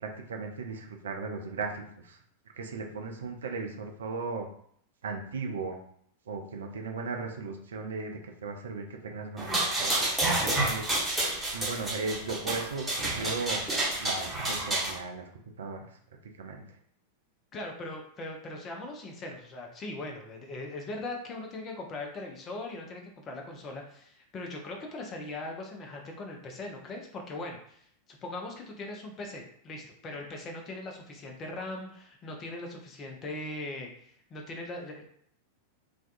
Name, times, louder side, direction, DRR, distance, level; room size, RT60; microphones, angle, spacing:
voice 1, 0.0-2.2 2.6-4.5 5.0-5.8 6.3-10.1 10.4-11.0 11.5-15.3 15.6-15.9 16.4-16.6, right 4 dB, 65° right, 3 dB, 0.4 m, -37 dB
sound 1, 9.4-14.9, right 2 dB, 10° right, 1.0 m, -29 dB
voice 2, 17.5-35.0, left 2 dB, 25° left, 1 dB, 0.5 m, -40 dB
2.5 x 2.2 x 2.5 m, 0.64 s
figure-of-eight pair, 90°, 0 cm